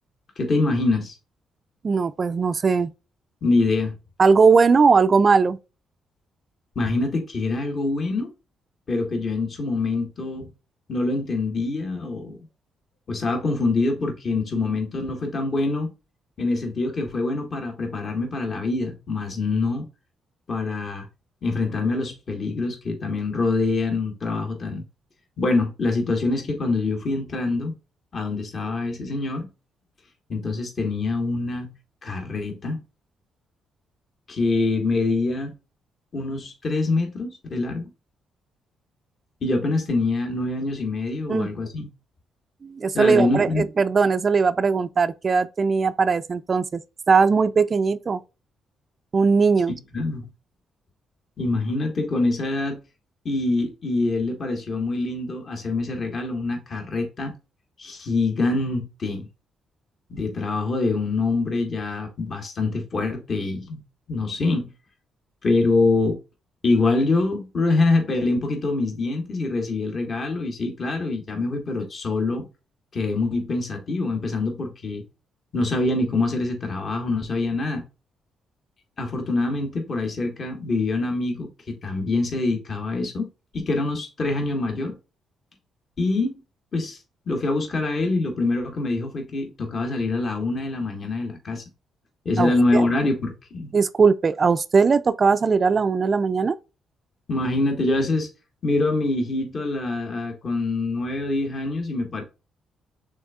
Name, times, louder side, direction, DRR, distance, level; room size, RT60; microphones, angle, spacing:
voice 1, 0.4-1.1 3.4-3.9 6.7-8.3 8.9-10.5 10.9-12.4 13.1-15.9 16.4-19.9 20.5-21.1 21.4-24.8 25.4-27.7 28.1-29.5 30.3-31.7 32.0-32.8 34.3-35.5 36.1-37.9 39.4-41.9 42.9-43.6 49.9-50.2 51.4-52.8 53.2-57.3 57.8-59.3 60.1-63.8 64.1-64.7 65.4-66.2 66.6-72.5 72.9-75.0 75.5-77.8 79.0-83.3 83.5-85.0 86.0-86.3 86.7-87.0 87.3-91.6 92.2-93.7 97.3-98.3 98.6-102.2, left 3 dB, 45° left, 1.5 m, -25 dB
voice 2, 1.8-2.9 4.2-5.6 41.3-41.5 42.6-46.8 47.1-48.2 49.1-49.7 92.4-92.9 93.7-96.6, right 5 dB, 40° right, 0.3 m, -19 dB
6.3 x 3.5 x 2.3 m
cardioid pair, 85°, 0 cm